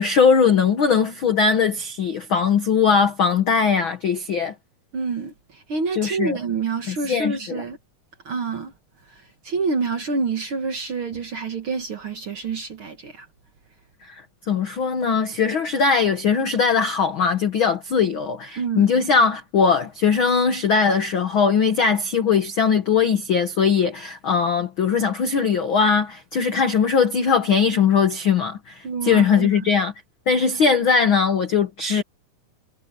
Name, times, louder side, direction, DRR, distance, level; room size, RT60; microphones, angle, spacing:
voice 1, 0.0-4.5 5.9-6.4 6.9-7.6 14.1-14.2 14.5-29.9 30.3-32.0, left 6 dB, 70° left, 1.2 m, -20 dB
voice 2, 4.9-7.8 8.3-8.7 9.4-13.3 18.6-18.9 28.8-29.6, right 4 dB, 45° right, 1.8 m, -27 dB
omnidirectional pair, 4.2 m